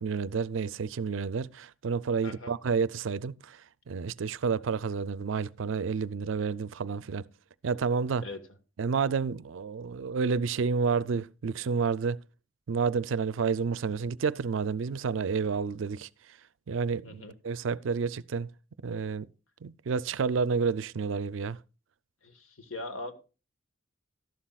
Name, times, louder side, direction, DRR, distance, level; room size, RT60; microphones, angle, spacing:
voice 1, 0.0-3.6 3.9-7.2 7.6-8.2 8.8-12.2 12.7-16.1 16.7-18.5 18.8-19.3 19.6-21.6, right 5 dB, 70° right, 0.4 m, -30 dB
voice 2, 2.2-2.5 8.2-8.4 17.0-17.3 22.2-23.1, left 2 dB, 85° left, 1.4 m, -40 dB
12.5 x 11.5 x 2.3 m
head